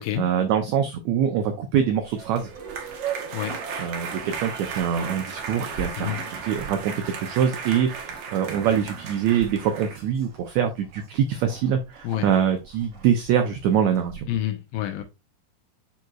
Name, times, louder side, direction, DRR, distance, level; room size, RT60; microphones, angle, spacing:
voice 1, 0.0-2.5 3.8-6.2 6.4-14.3, right 8 dB, 80° right, 1.7 m, -24 dB
Livestock farm animals working animals, 1.7-14.2, right 4 dB, 45° right, 3.8 m, -46 dB
sound 1, 2.1-9.9, right 6 dB, 65° right, 1.7 m, -35 dB
voice 2, 14.3-15.0, left 12 dB, 85° left, 2.6 m, -28 dB
9.3 x 4.3 x 2.4 m
omnidirectional pair, 4.0 m